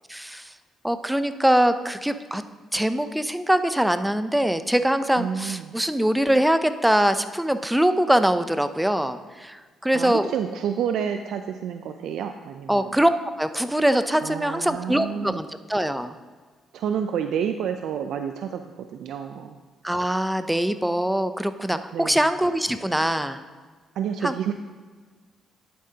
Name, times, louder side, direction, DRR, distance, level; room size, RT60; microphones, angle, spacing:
voice 1, 0.1-0.5 0.8-2.4 2.7-10.3 12.7-16.1 19.8-23.4 24.2-24.3, right 1 dB, 5° right, 11 dB, 0.5 m, -23 dB
voice 2, 5.2-5.7 9.9-13.0 14.2-15.4 16.7-19.6 21.9-22.3 24.0-24.5, right 8 dB, 75° right, 7 dB, 0.4 m, -29 dB
11.0 x 8.5 x 2.8 m, 1.5 s
cardioid pair, 90°, 0 cm